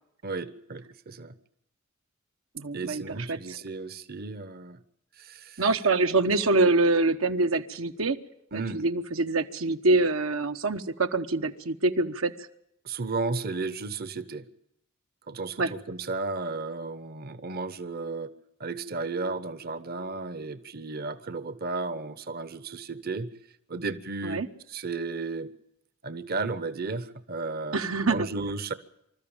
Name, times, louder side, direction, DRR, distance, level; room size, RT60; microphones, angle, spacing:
voice 1, 0.2-1.3 2.7-4.8 5.2-5.6 8.5-8.8 12.8-14.5 15.3-18.3 18.6-23.3 23.7-25.5 26.0-27.8 28.1-28.7, right 3 dB, 45° right, 14 dB, 1.0 m, -34 dB
voice 2, 2.5-3.0 3.3-3.4 5.6-8.2 8.5-12.3 15.6-15.7 24.2-24.5 27.7-28.3, right 3 dB, 75° right, 7 dB, 1.2 m, -25 dB
26.0 x 13.5 x 8.9 m, 0.78 s
head